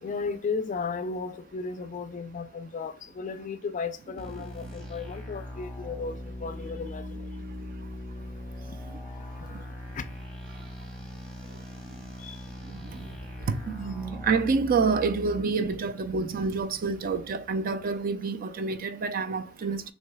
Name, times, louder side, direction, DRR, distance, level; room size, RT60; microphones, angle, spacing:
voice 1, 0.0-7.3 8.3-9.6 9.9-10.1 12.2-12.5, left 4 dB, 40° left, 0.3 m, -35 dB
sound 1, 4.2-15.5, left 1 dB, 5° left, 0.8 m, -40 dB
voice 2, 13.7-19.8, right 4 dB, 45° right, 0.4 m, -27 dB
6.3 x 2.7 x 2.2 m
head